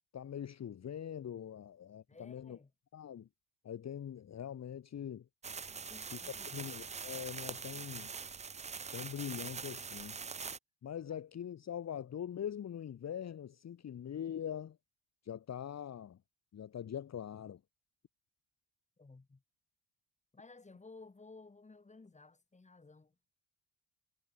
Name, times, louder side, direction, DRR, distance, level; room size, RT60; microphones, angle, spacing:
voice 1, 0.1-2.6 2.9-3.3 3.6-5.2 6.1-6.2 6.5-8.1 8.9-10.2 10.8-14.8 15.2-16.2 16.5-17.6, left 9 dB, 40° left, 1.4 m, -43 dB
voice 2, 2.1-2.7 5.7-6.6 19.0-19.4 20.3-23.1, left 3 dB, 20° left, 2.5 m, -56 dB
sound 1, 5.4-10.6, right 5 dB, 20° right, 0.5 m, -43 dB
supercardioid pair, 70°, 39 cm